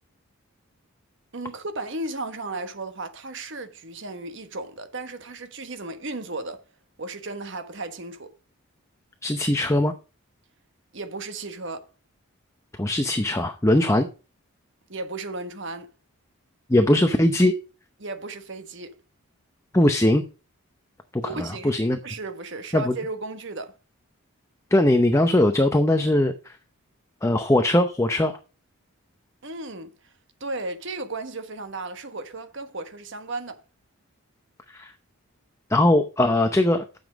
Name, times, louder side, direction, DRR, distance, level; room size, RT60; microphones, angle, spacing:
voice 1, 1.3-6.6 7.0-8.3 10.9-11.9 14.9-15.9 18.0-19.0 21.2-21.7 22.0-23.8 29.4-30.1 30.4-33.6, right 2 dB, 55° right, 1.3 m, -35 dB
voice 2, 9.2-9.9 12.8-14.1 16.7-17.5 19.7-20.2 21.1-22.0 22.7-22.9 24.7-26.6 27.2-28.3 34.7-34.9 35.7-36.8, left 1 dB, 15° left, 0.6 m, -20 dB
9.6 x 7.1 x 5.0 m
head